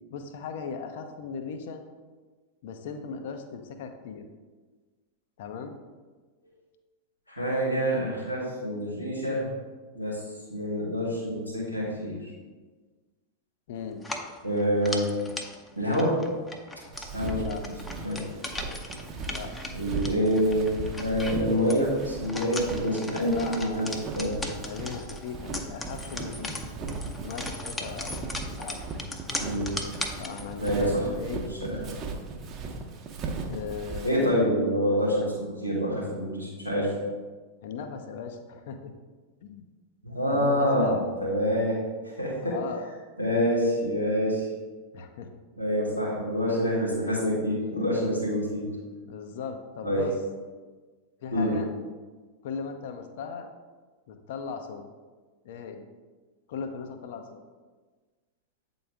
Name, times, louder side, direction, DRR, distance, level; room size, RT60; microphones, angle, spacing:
voice 1, 0.1-1.8 2.6-4.3 5.4-5.7 13.7-14.0 17.3-17.6 19.3-19.5 23.2-23.9 24.6-26.6 27.2-28.2 28.6-28.8 30.2-31.4 33.5-34.4 37.6-38.9 39.4-39.7 40.3-41.0 42.4-42.9 44.9-45.3 49.0-50.1 51.2-51.7 52.4-53.5 54.1-54.9 55.4-55.8 56.5-57.4, left 6 dB, 55° left, 6 dB, 0.6 m, -38 dB
voice 2, 7.3-9.5 9.9-10.2 10.5-12.2 14.4-15.1 15.8-16.2 17.0-17.5 18.0-18.2 19.7-20.7 21.0-24.4 29.4-29.7 30.6-31.8 34.0-36.9 40.0-41.8 42.2-42.6 43.2-44.5 45.6-48.7 49.8-50.0 51.3-51.5, equal, 90° left, -6 dB, 2.0 m, -26 dB
sound 1, 14.0-30.8, left 2 dB, 10° left, 0.6 m, -39 dB
Walk footsteps, 16.9-34.3, right 3 dB, 30° right, 0.8 m, -38 dB
8.5 x 3.9 x 3.5 m, 1.4 s
figure-of-eight pair, 90°, 0 cm